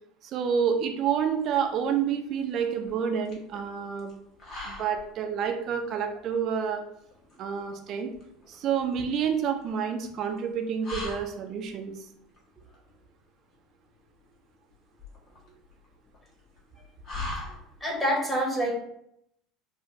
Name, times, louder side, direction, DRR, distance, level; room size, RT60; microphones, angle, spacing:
voice 1, 0.2-4.1 4.6-6.8 7.4-8.1 8.5-12.1, right 7 dB, 45° right, 4 dB, 0.5 m, -28 dB
sound 1, 1.0-18.1, left 2 dB, 40° left, 1.3 m, -44 dB
voice 2, 17.8-18.7, equal, 15° left, -2 dB, 1.3 m, -26 dB
4.6 x 2.5 x 3.1 m, 0.73 s
figure-of-eight pair, 70°, 0 cm